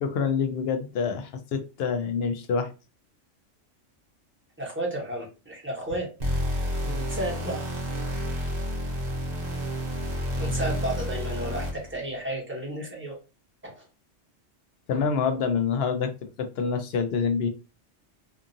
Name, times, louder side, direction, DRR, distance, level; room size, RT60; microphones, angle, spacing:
voice 1, 0.0-2.7 14.9-16.1 16.4-17.5, left 5 dB, 65° left, 7 dB, 0.7 m, -26 dB
voice 2, 4.6-6.1 6.8-7.6 10.4-13.1 13.6-13.8, right 1 dB, 10° right, -3 dB, 0.8 m, -32 dB
sound 1, 6.2-12.0, equal, 45° right, 0.7 m, -30 dB
2.8 x 2.4 x 2.5 m, 0.30 s
omnidirectional pair, 1.3 m